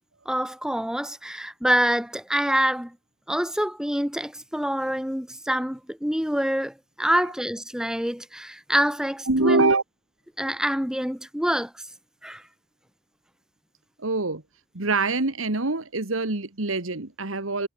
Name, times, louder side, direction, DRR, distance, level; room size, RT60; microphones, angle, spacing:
voice 1, 0.2-2.9 3.3-9.7 10.4-11.9 12.2-12.4, equal, 5° right, 1.3 m, -26 dB
voice 2, 9.3-9.8 14.0-14.4 14.7-17.7, right 3 dB, 85° right, 2.1 m, -24 dB
head